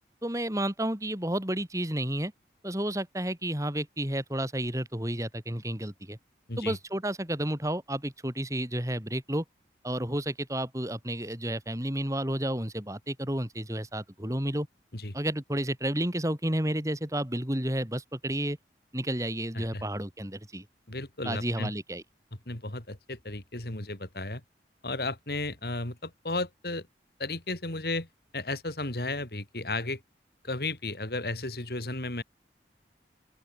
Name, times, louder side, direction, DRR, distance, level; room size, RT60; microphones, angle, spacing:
voice 1, 0.2-2.3 2.6-6.2 6.6-9.4 9.8-14.7 15.1-18.6 18.9-20.6 21.2-22.0, right 1 dB, 20° right, 3.1 m, -31 dB
voice 2, 20.9-21.7 22.5-24.4 24.8-26.9 27.2-28.1 28.3-30.0 30.4-32.2, left 2 dB, 60° left, 3.1 m, -34 dB
open air
head